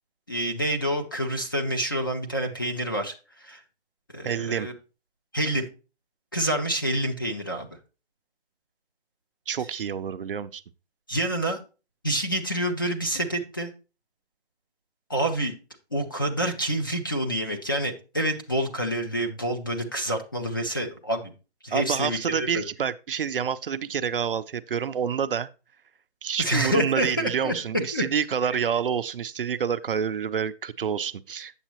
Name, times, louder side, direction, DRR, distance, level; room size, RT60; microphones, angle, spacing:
voice 1, 0.3-3.6 4.1-4.7 5.3-5.7 6.3-7.7 11.1-11.6 12.0-13.7 15.1-15.5 15.9-21.3 21.6-22.6 26.4-28.0 28.5-28.6, right 1 dB, 20° left, 0.5 m, -27 dB
voice 2, 4.2-4.7 9.5-10.6 21.7-25.5 26.2-31.5, right 7 dB, 55° right, 0.5 m, -28 dB
9.0 x 7.0 x 2.9 m
hypercardioid pair, 165°, 33 cm